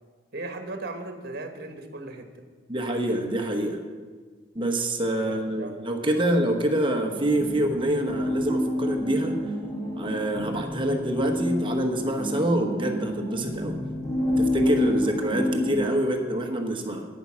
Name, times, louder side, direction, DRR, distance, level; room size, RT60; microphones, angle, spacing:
voice 1, 0.3-2.3 5.2-5.8 6.2-6.3, right 2 dB, 55° right, 6 dB, 1.3 m, -37 dB
voice 2, 2.7-3.8 4.5-9.4 10.0-13.8 14.3-17.1, right 1 dB, 30° right, 4 dB, 1.1 m, -26 dB
sound 1, 7.1-15.7, left 1 dB, ahead, 3.2 m, -28 dB
10.0 x 9.6 x 6.2 m, 1.5 s
head